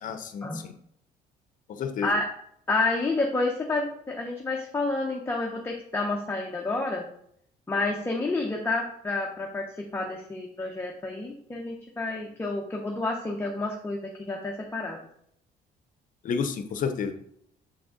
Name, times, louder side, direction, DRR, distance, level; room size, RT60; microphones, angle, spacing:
voice 1, 0.0-0.7 1.7-2.1 16.2-17.1, left 6 dB, 50° left, 8 dB, 0.7 m, -30 dB
voice 2, 2.7-7.0 7.7-15.0, left 2 dB, 15° left, 0 dB, 0.8 m, -29 dB
6.8 x 3.8 x 3.8 m, 0.70 s
cardioid pair, 110°, 17 cm